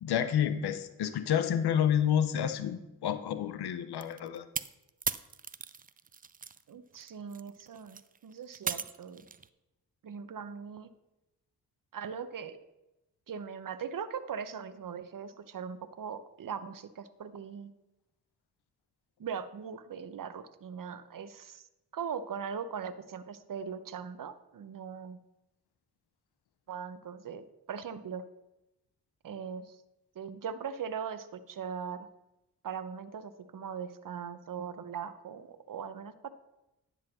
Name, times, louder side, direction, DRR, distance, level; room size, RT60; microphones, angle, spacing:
voice 1, 0.0-4.5, left 9 dB, 75° left, 12 dB, 0.7 m, -29 dB
sound 1, 4.0-6.6 6.9-9.5, right 6 dB, 25° right, 0.4 m, -38 dB
voice 2, 6.7-9.3 10.0-10.9 11.9-12.6 13.3-17.7 19.2-21.7 21.9-25.2 26.7-28.2 29.2-29.8 30.1-32.1 32.6-36.3, right 7 dB, 55° right, 12 dB, 0.8 m, -40 dB
10.5 x 4.0 x 6.1 m, 0.94 s
supercardioid pair, 40°, 40 cm